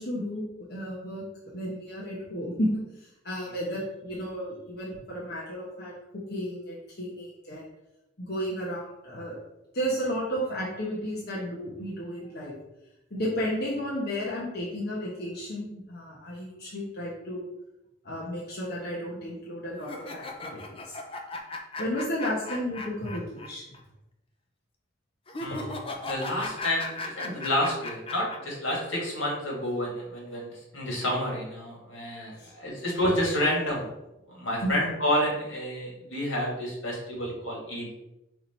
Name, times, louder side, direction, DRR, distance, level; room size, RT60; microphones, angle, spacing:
voice 1, 0.0-2.7 3.0-5.9 6.3-7.6 8.2-9.4 9.7-12.5 13.1-17.5 18.0-21.0 21.8-23.7 32.3-32.5 34.6-34.8, equal, 55° left, -5 dB, 1.2 m, -33 dB
sound 1, 19.8-23.5 23.7-23.8 25.3-28.4, left 2 dB, 30° left, 0.6 m, -37 dB
voice 2, 25.4-33.9 34.3-37.9, left 1 dB, 80° left, -3 dB, 2.3 m, -29 dB
5.0 x 4.2 x 4.5 m, 0.90 s
head